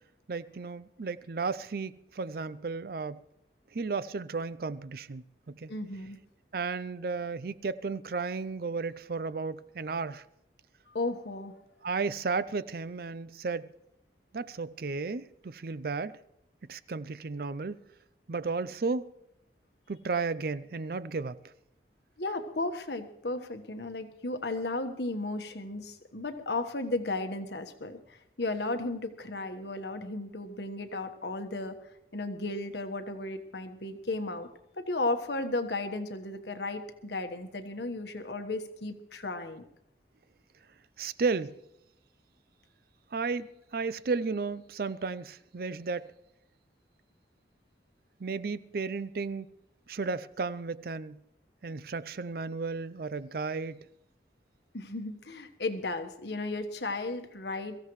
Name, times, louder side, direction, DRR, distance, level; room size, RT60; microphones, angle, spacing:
voice 1, 0.3-3.2 3.7-5.7 6.5-10.2 11.8-13.7 14.3-16.2 16.7-17.8 18.3-19.1 19.9-21.4 41.0-41.5 43.1-46.1 48.2-49.5 49.9-51.2 51.6-53.8, right 4 dB, 55° right, 0.5 m, -33 dB
voice 2, 5.7-6.2 10.9-11.6 22.2-31.8 32.1-34.5 34.7-39.6 54.7-57.8, left 2 dB, 70° left, 1.3 m, -34 dB
23.0 x 15.0 x 3.2 m
head